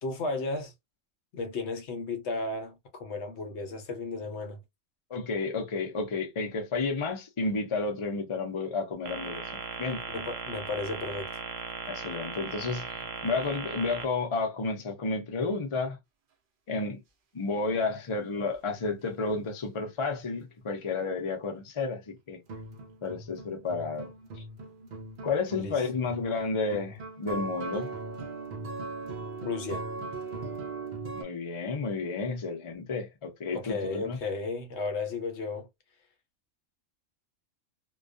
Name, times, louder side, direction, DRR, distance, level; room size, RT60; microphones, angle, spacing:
voice 1, 0.0-0.7 1.3-4.6 10.1-11.3 25.5-25.8 29.4-29.9 33.5-35.7, left 3 dB, 65° left, 1.0 m, -34 dB
voice 2, 5.1-9.4 9.8-10.0 11.9-16.0 16.7-17.0 17.3-22.4 23.0-24.4 25.2-27.9 31.1-34.2, left 3 dB, 40° left, 0.4 m, -31 dB
sound 1, 9.1-14.0, right 5 dB, 90° right, 1.0 m, -38 dB
sound 2, 22.5-31.2, right 3 dB, 55° right, 0.6 m, -39 dB
2.3 x 2.2 x 2.5 m
omnidirectional pair, 1.3 m